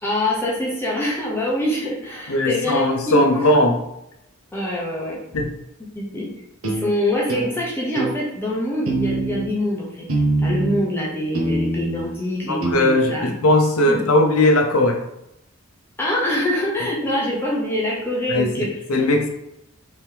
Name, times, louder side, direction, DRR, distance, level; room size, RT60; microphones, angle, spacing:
voice 1, 0.0-3.4 4.5-5.2 5.9-6.3 6.6-10.0 10.4-13.3 13.9-14.0 16.0-18.7, left 1 dB, 10° left, -5 dB, 0.8 m, -24 dB
voice 2, 2.3-3.8 5.3-5.5 12.5-15.0 18.3-19.3, left 1 dB, 85° left, 3 dB, 0.7 m, -18 dB
sound 1, 6.6-6.9 7.3-7.5 8.0-8.2 8.9-9.5 10.1-10.8 11.3-12.1 12.6-12.7, right 2 dB, 75° right, 0.8 m, -23 dB
3.5 x 3.0 x 3.4 m, 0.82 s
head